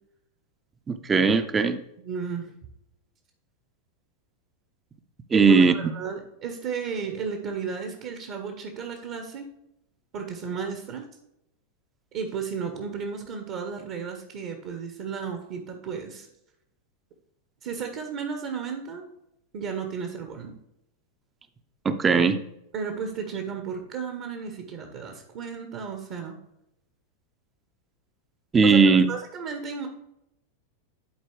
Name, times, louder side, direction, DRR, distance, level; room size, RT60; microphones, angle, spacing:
voice 1, 0.9-1.8 5.3-5.7 21.8-22.4 28.5-29.0, right 5 dB, 20° right, 10 dB, 0.6 m, -18 dB
voice 2, 2.0-2.5 5.3-9.5 10.1-11.1 12.1-16.3 17.6-19.0 19.5-20.5 22.7-26.4 28.6-29.9, right 6 dB, 45° right, 5 dB, 1.0 m, -33 dB
11.0 x 4.5 x 3.2 m, 0.83 s
figure-of-eight pair, 90°, 0 cm